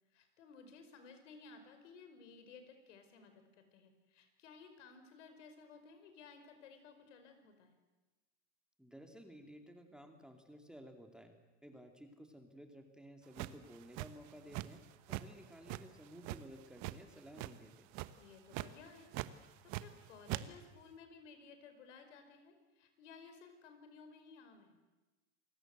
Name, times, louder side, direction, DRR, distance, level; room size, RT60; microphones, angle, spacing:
voice 1, 0.1-7.8 18.2-19.1 19.6-24.8, left 5 dB, 80° left, 7 dB, 5.3 m, -57 dB
voice 2, 8.8-11.4 11.6-14.8 15.1-17.9, equal, ahead, 4 dB, 2.6 m, -55 dB
sound 1, 13.4-14.8 15.1-15.3 15.7-17.0 17.3-17.7 17.9-18.2 18.5-18.7 19.1-20.0 20.3-20.4, right 18 dB, 50° right, 1.3 m, -41 dB
28.0 x 18.5 x 8.0 m, 1.1 s
supercardioid pair, 120°, 36 cm